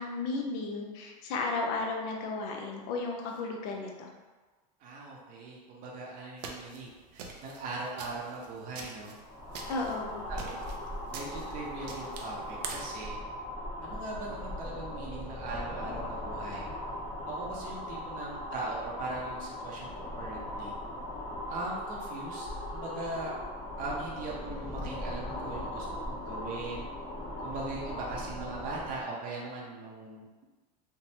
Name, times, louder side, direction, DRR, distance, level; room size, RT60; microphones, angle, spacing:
voice 1, 0.0-4.1 9.7-10.2, left 3 dB, 65° left, 1 dB, 0.6 m, -34 dB
voice 2, 4.8-9.1 10.3-10.7 11.1-13.2 13.8-16.7 17.3-20.7 21.5-23.3 23.8-26.9 27.4-30.4, right 2 dB, 40° right, -4 dB, 0.6 m, -40 dB
sound 1, 6.4-13.0, right 4 dB, 90° right, 0.5 m, -45 dB
sound 2, 9.2-29.1, left 1 dB, 20° left, 0.6 m, -39 dB
3.3 x 2.0 x 2.7 m, 1.3 s
supercardioid pair, 130°, 21 cm